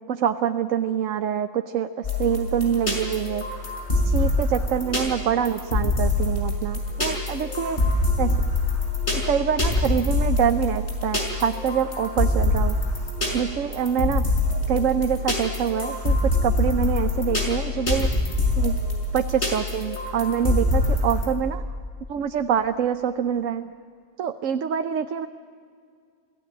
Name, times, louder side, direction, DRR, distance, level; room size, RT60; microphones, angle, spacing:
voice 1, 0.1-3.4 3.9-7.8 8.2-8.4 9.1-12.8 13.3-14.2 14.7-18.1 18.6-18.8 19.1-21.6 22.1-23.8 24.2-25.3, right 8 dB, 80° right, 8 dB, 1.2 m, -25 dB
sound 1, 2.0-21.3, left 2 dB, 60° left, 6.2 m, -25 dB
29.0 x 18.0 x 8.6 m, 2.4 s
omnidirectional pair, 1.3 m